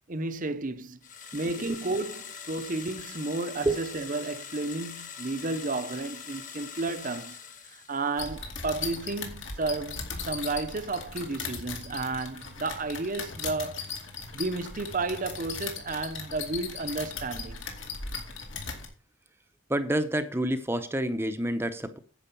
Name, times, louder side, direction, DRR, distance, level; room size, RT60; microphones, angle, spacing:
voice 1, 0.1-1.0 1.3-7.4 7.6-13.8 14.3-17.6, right 3 dB, 40° right, 0.8 m, -32 dB
sound 1, 1.0-8.3, left 7 dB, 40° left, 1.7 m, -43 dB
sound 2, 8.2-18.9, left 5 dB, 65° left, 2.5 m, -38 dB
voice 2, 19.7-22.0, right 1 dB, 10° right, 0.7 m, -28 dB
10.0 x 7.8 x 5.4 m
head